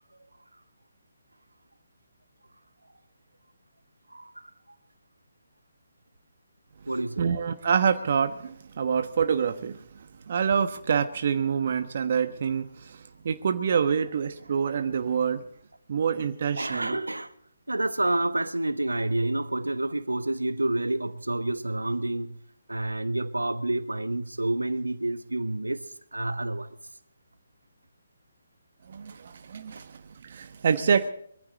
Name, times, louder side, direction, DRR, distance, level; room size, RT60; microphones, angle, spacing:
voice 1, 4.1-4.5 6.9-7.3 16.6-17.3 17.7-22.4 22.7-25.8 26.1-26.8 29.8-29.9, right 2 dB, 85° right, 1.3 m, -29 dB
voice 2, 7.2-9.9 10.3-15.4 15.9-17.0 28.9-31.1, right 6 dB, 50° right, 1.2 m, -26 dB
23.0 x 15.0 x 4.1 m
figure-of-eight pair, 140°, 0 cm